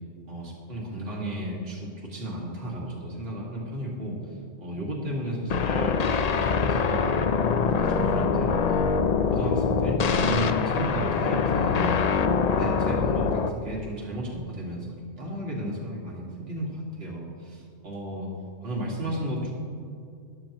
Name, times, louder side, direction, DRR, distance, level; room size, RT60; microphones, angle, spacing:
voice 1, 0.3-4.2 4.6-6.0 6.4-7.0 7.8-8.9 9.3-12.0 12.6-14.9 15.2-18.3 18.6-19.5, right 1 dB, 50° right, -4 dB, 2.3 m, -33 dB
sound 1, 5.5-13.5, left 5 dB, 65° left, 0.4 m, -24 dB
13.5 x 11.5 x 3.0 m, 2.5 s
omnidirectional pair, 1.3 m